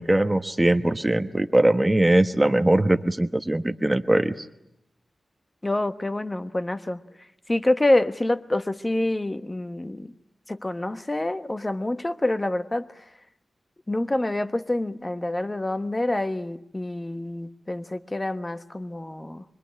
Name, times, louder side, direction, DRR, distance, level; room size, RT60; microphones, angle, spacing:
voice 1, 0.0-4.5, right 1 dB, 15° right, 7 dB, 1.1 m, -21 dB
voice 2, 5.6-7.0 7.5-10.1 10.5-13.0 13.9-19.4, left 1 dB, 20° left, 10 dB, 1.1 m, -27 dB
25.5 x 23.0 x 9.9 m, 0.82 s
wide cardioid pair, 130°, 0 cm